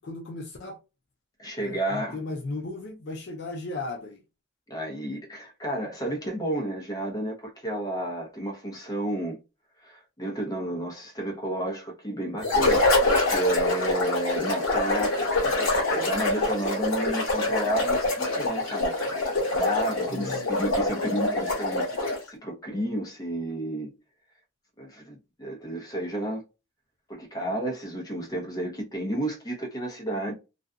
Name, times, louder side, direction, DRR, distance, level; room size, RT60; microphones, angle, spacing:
voice 1, 0.0-0.8 1.6-4.2 20.1-20.5, left 2 dB, 50° left, 0.4 m, -36 dB
voice 2, 1.4-2.2 4.7-9.4 9.8-19.0 19.5-23.9 24.8-26.4 27.1-30.3, right 1 dB, 15° left, 0.7 m, -31 dB
sound 1, 12.4-22.3, left 2 dB, 70° left, 1.1 m, -25 dB
2.5 x 2.2 x 2.4 m
head